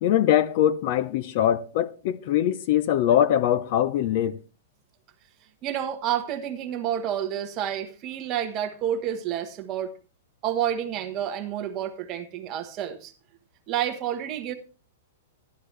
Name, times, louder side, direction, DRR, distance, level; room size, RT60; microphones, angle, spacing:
voice 1, 0.0-4.4, left 11 dB, 35° left, 0.6 m, -22 dB
voice 2, 5.6-9.9 10.4-13.1 13.7-14.5, right 10 dB, 20° right, 1.1 m, -29 dB
13.5 x 11.5 x 3.3 m
hypercardioid pair, 175°, 0 cm